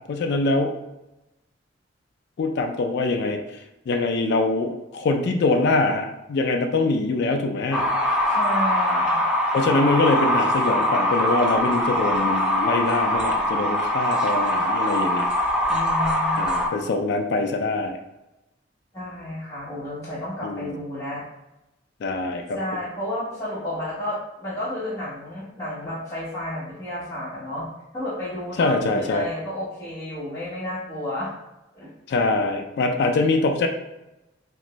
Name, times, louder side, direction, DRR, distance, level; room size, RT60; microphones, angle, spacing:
voice 1, 0.1-0.7 2.4-7.9 9.5-15.3 16.4-18.0 20.4-20.8 22.0-22.6 28.6-29.3 32.1-33.7, left 3 dB, 60° left, 4 dB, 0.3 m, -23 dB
sound 1, 7.7-16.7, left 1 dB, 5° right, 0.5 m, -22 dB
voice 2, 8.3-9.2 15.7-16.6 18.9-21.2 22.5-27.7 27.9-31.3 31.7-31.9, left 1 dB, 15° left, -11 dB, 1.1 m, -31 dB
3.1 x 2.5 x 2.9 m, 0.98 s
head